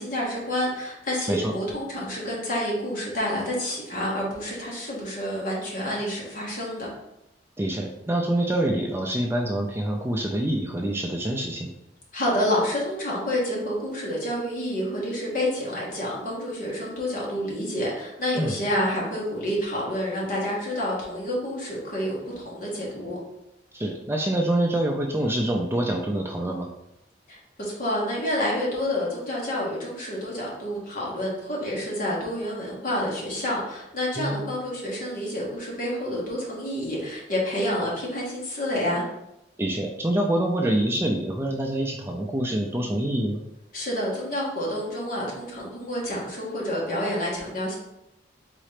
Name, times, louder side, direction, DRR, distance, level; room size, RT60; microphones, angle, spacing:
voice 1, 0.0-6.9 12.1-23.2 27.3-39.0 43.7-47.8, equal, 50° left, -4 dB, 1.5 m, -28 dB
voice 2, 7.6-11.7 18.4-18.5 23.7-26.7 34.2-34.4 39.6-43.4, right 1 dB, 15° right, 1 dB, 0.4 m, -26 dB
4.1 x 3.7 x 3.3 m, 0.86 s
head